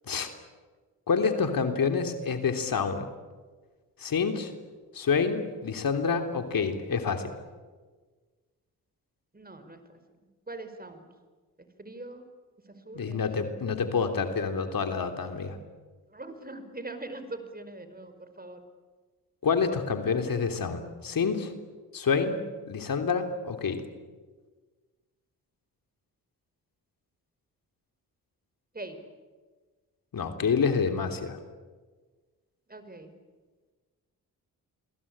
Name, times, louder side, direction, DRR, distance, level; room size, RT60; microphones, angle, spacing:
voice 1, 1.1-3.1 4.0-4.5 4.9-7.3 12.9-15.6 19.4-21.5 21.9-23.8 30.1-31.4, left 5 dB, 60° left, 6 dB, 3.4 m, -28 dB
voice 2, 9.3-9.8 10.5-11.1 11.8-12.2 12.8-13.2 16.1-18.6 28.7-29.0 32.7-33.1, right 2 dB, 25° right, 9 dB, 5.1 m, -42 dB
29.0 x 22.0 x 8.9 m, 1.4 s
supercardioid pair, 55°, 38 cm